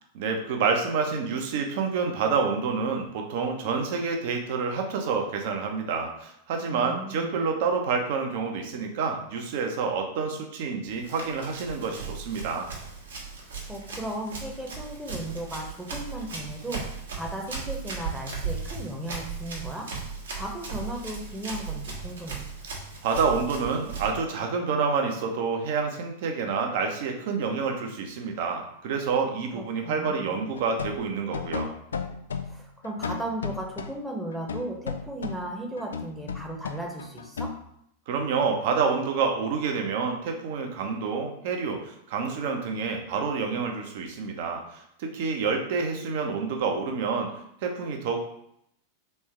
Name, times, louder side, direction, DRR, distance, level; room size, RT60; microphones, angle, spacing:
voice 1, 0.1-12.7 23.0-31.7 38.1-47.3 47.6-48.3, right 5 dB, 50° right, 3 dB, 0.8 m, -28 dB
voice 2, 6.7-7.3 13.7-19.9 20.3-22.5 29.5-30.4 32.5-37.5, right 1 dB, 5° right, 0 dB, 1.0 m, -36 dB
Run, 10.9-24.1, right 4 dB, 65° right, 1.2 m, -37 dB
sound 1, 30.5-33.9 34.3-35.5 35.8-37.6, left 5 dB, 70° left, 0.3 m, -34 dB
3.5 x 3.4 x 4.4 m, 0.73 s
figure-of-eight pair, 90°, 0 cm